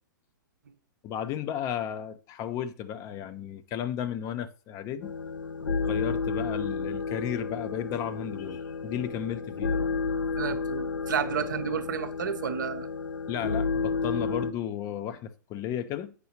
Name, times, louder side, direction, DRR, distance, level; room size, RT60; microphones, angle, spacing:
voice 1, 1.0-5.2 5.8-9.9 13.3-16.1, left 10 dB, 30° left, 0.6 m, -34 dB
sound 1, 5.0-14.5, left 4 dB, 80° left, 0.6 m, -31 dB
voice 2, 10.4-12.9, right 7 dB, 70° right, 0.7 m, -31 dB
8.2 x 5.6 x 2.9 m
figure-of-eight pair, 110°, 11 cm